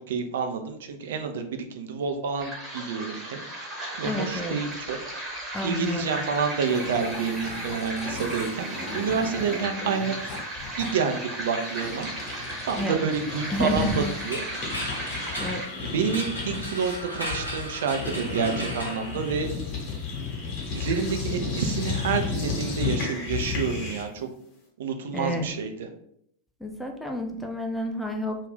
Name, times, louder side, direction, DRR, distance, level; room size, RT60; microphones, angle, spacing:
voice 1, 0.1-3.4 4.0-5.0 5.6-10.2 10.8-12.1 12.6-14.4 15.8-19.5 20.7-24.3 24.8-25.9, right 6 dB, 60° right, 6 dB, 0.4 m, -28 dB
sound 1, 2.4-15.7, right 1 dB, 20° right, 0.9 m, -36 dB
voice 2, 4.0-4.6 5.5-6.1 12.8-13.1 13.5-14.1 15.4-15.6 25.1-25.5 26.6-28.4, left 1 dB, 5° left, 2 dB, 0.5 m, -29 dB
sound 2, 6.3-6.4 6.6-12.8 13.1-24.2, left 4 dB, 45° left, 1.0 m, -34 dB
sound 3, 13.8-19.8, equal, 90° left, 0.6 m, -37 dB
2.4 x 2.3 x 3.4 m, 0.69 s
figure-of-eight pair, 90°, 0 cm